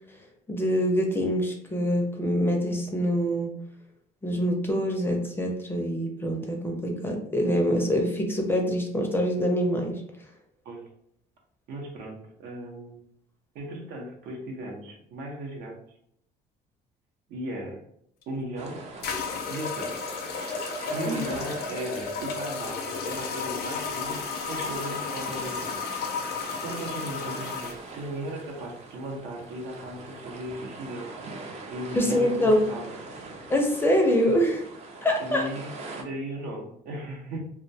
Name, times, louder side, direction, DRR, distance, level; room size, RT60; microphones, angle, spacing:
voice 1, 0.5-3.6 4.2-10.0 21.0-21.2 32.0-32.7 33.5-34.6 35.0-35.5, equal, 15° left, 1 dB, 0.4 m, -25 dB
voice 2, 11.7-13.0 13.5-15.8 17.3-17.8 18.3-18.9 19.5-20.1 20.9-25.7 26.6-31.1 31.7-33.0 35.2-37.4, right 1 dB, 75° right, 0 dB, 0.7 m, -36 dB
sound 1, 18.2-18.3 19.0-27.8, left 5 dB, 70° left, 0.5 m, -33 dB
sound 2, 18.6-36.0, right 3 dB, 40° right, 0.5 m, -42 dB
2.2 x 2.1 x 2.6 m, 0.70 s
cardioid pair, 110°, 17 cm